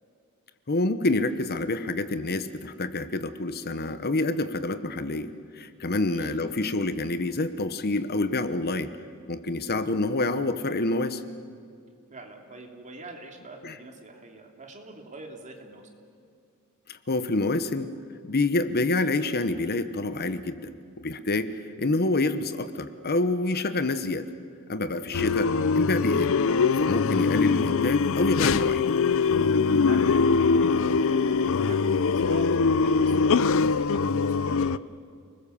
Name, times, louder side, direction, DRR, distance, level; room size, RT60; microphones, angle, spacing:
voice 1, 0.7-8.9 9.3-11.2 13.6-13.7 16.9-17.9 18.2-20.7 21.0-24.3 24.7-26.4 26.8-28.9, left 2 dB, 45° left, 11 dB, 1.0 m, -27 dB
voice 2, 12.1-15.9 25.0-25.3 29.8-34.7, right 2 dB, 35° right, 2 dB, 3.0 m, -45 dB
sound 1, 25.1-34.8, left 5 dB, 65° left, 0.6 m, -23 dB
29.5 x 20.5 x 7.1 m, 2.4 s
head